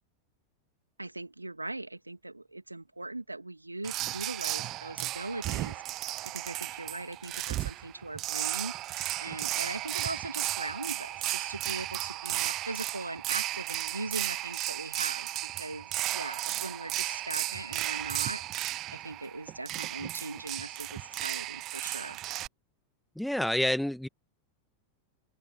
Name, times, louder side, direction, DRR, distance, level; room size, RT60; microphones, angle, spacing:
voice 1, 1.0-8.7 9.2-15.3 15.6-18.4 18.9-22.2, right 2 dB, 85° right, 2.9 m, -40 dB
sound 1, 3.8-22.5, right 16 dB, 35° right, 0.6 m, -34 dB
voice 2, 23.1-24.1, left 1 dB, ahead, 1.7 m, -28 dB
open air
figure-of-eight pair, 90°, 0 cm